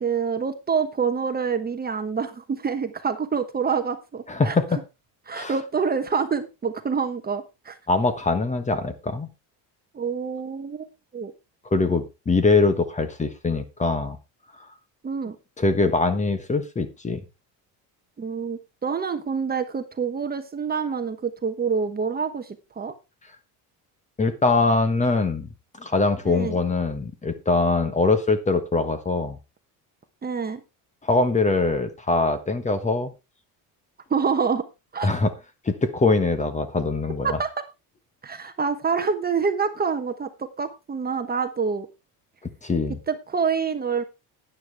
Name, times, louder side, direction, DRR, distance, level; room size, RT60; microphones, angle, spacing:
voice 1, 0.0-4.6 5.3-7.8 9.9-10.9 11.1-11.3 15.0-15.4 18.2-22.9 26.2-26.6 30.2-30.6 34.1-34.7 34.9-35.1 37.2-37.5 38.2-41.9 43.1-44.0, right 5 dB, 20° right, 8 dB, 1.1 m, -26 dB
voice 2, 4.3-4.8 5.3-5.5 7.9-9.3 11.7-14.2 15.6-17.2 24.2-25.5 25.8-29.4 31.0-33.1 35.0-35.3 35.6-37.4 42.6-43.0, left 3 dB, 15° left, 10 dB, 1.2 m, -22 dB
11.5 x 9.9 x 3.4 m, 0.26 s
cardioid pair, 135°, 41 cm